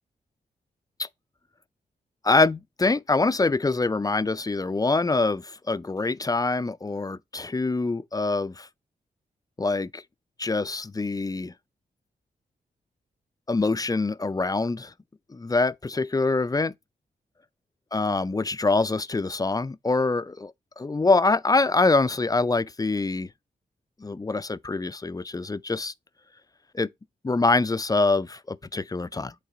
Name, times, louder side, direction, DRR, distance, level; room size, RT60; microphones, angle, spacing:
voice 1, 2.2-8.7 9.6-10.0 10.4-11.5 13.5-14.9 15.3-16.7 17.9-23.3 24.0-25.9 26.7-26.9 27.2-29.3, left 3 dB, 20° left, 0.5 m, -25 dB
8.5 x 3.3 x 3.9 m
supercardioid pair, 40°, 18 cm